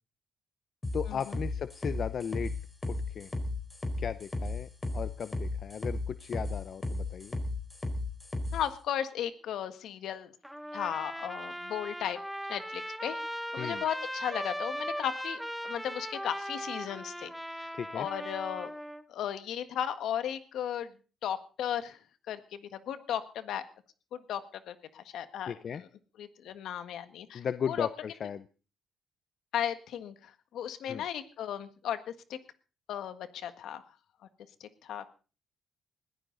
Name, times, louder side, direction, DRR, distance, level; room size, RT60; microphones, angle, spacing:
sound 1, 0.8-8.6, left 2 dB, 20° left, 4.2 m, -34 dB
voice 1, 0.9-2.5 2.9-3.3 4.0-7.4 13.6-13.8 17.7-18.1 25.5-25.8 27.3-28.5 30.9-31.0, left 7 dB, 55° left, 13 dB, 0.7 m, -36 dB
voice 2, 8.5-10.3 10.7-12.2 12.5-13.2 13.5-15.4 15.6-17.3 17.6-18.7 19.1-20.9 21.2-22.0 22.3-23.6 24.1-25.5 26.2-27.9 29.5-32.0 32.3-32.4 32.9-33.8 34.6-35.1, left 10 dB, 75° left, 11 dB, 1.6 m, -35 dB
Trumpet, 10.4-19.0, equal, ahead, 1.1 m, -38 dB
20.5 x 15.0 x 4.0 m, 0.37 s
cardioid pair, 90°, 0 cm